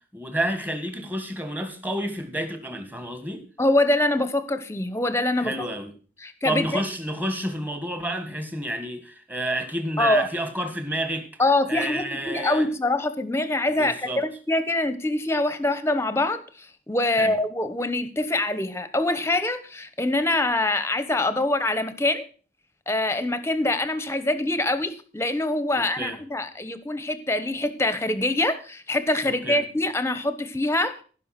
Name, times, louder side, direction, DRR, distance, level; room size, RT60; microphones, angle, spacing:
voice 1, 0.1-3.4 5.4-5.9 6.4-11.3 11.7-12.7 13.8-14.2 17.2-17.3 25.8-26.2 29.2-29.6, right 1 dB, 10° right, 1.6 m, -30 dB
voice 2, 3.6-5.5 6.2-6.8 10.0-10.3 11.4-22.2 22.9-31.0, left 2 dB, 15° left, 1.0 m, -24 dB
16.5 x 5.6 x 5.9 m
head